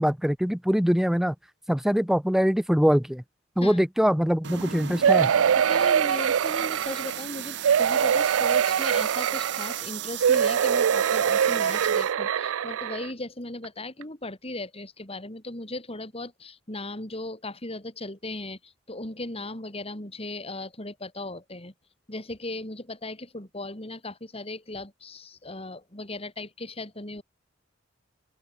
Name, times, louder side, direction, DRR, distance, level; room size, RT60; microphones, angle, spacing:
voice 1, 0.0-1.3 1.7-3.2 3.6-5.3, equal, ahead, 0.5 m, -23 dB
sound 1, 4.4-12.1, right 10 dB, 60° right, 0.9 m, -36 dB
sound 2, 5.0-7.2 7.6-9.8 10.2-13.1 13.6-13.7 14.0-14.1, right 8 dB, 85° right, 0.4 m, -23 dB
voice 2, 5.7-21.7 22.1-27.2, left 2 dB, 30° left, 4.6 m, -37 dB
open air
head